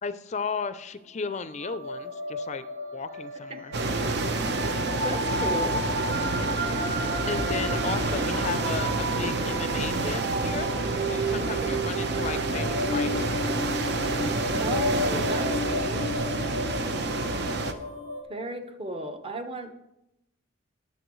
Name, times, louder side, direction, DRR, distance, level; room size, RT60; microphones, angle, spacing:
voice 1, 0.0-2.6 2.9-3.7 7.3-10.7 11.1-13.3, left 5 dB, 35° left, 13 dB, 0.4 m, -34 dB
sound 1, 1.4-18.2, equal, 90° right, 2.2 m, -33 dB
sound 2, 3.7-17.7, right 2 dB, 55° right, 0.8 m, -28 dB
voice 2, 4.7-5.8 11.3-11.8 14.6-16.4 18.3-19.7, right 1 dB, 30° right, 6 dB, 0.9 m, -35 dB
19.0 x 7.1 x 3.1 m, 0.88 s
head